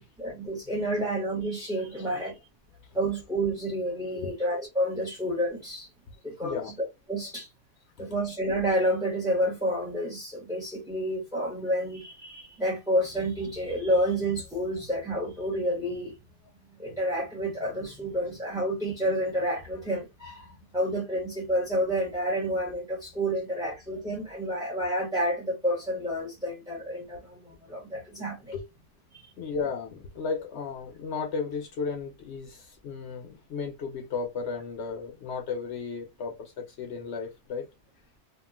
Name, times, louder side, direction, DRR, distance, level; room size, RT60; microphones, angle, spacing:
voice 1, 0.0-2.4 2.9-5.9 6.2-6.7 7.1-7.5 8.0-16.2 16.8-28.5, equal, 5° right, 0.9 m, -29 dB
voice 2, 6.4-6.7 28.5-28.6 29.4-37.7, left 5 dB, 70° left, 0.9 m, -34 dB
3.0 x 2.4 x 2.3 m
omnidirectional pair, 1.2 m